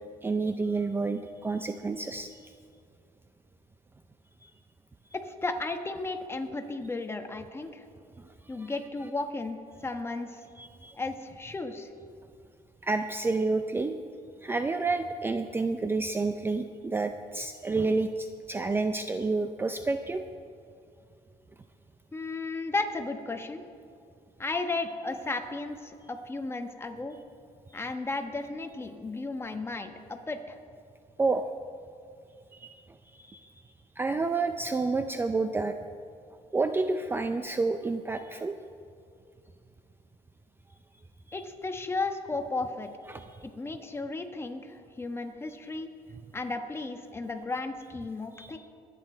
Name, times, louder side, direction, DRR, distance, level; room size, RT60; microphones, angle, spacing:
voice 1, 0.2-2.5 4.4-4.5 8.2-8.3 8.6-8.7 10.6-10.9 12.8-13.9 14.4-20.2 31.2-31.5 32.5-32.7 33.2-33.5 34.0-35.8 36.5-38.6 43.1-43.2 48.4-48.6, right 3 dB, 15° right, 8 dB, 0.5 m, -29 dB
voice 2, 5.2-7.8 8.5-10.4 10.9-11.9 22.1-23.6 24.4-27.1 27.7-30.6 41.3-42.9 43.4-45.9 46.3-48.6, left 3 dB, 20° left, 6 dB, 1.2 m, -34 dB
23.0 x 9.3 x 4.4 m, 2.5 s
cardioid pair, 115°, 14 cm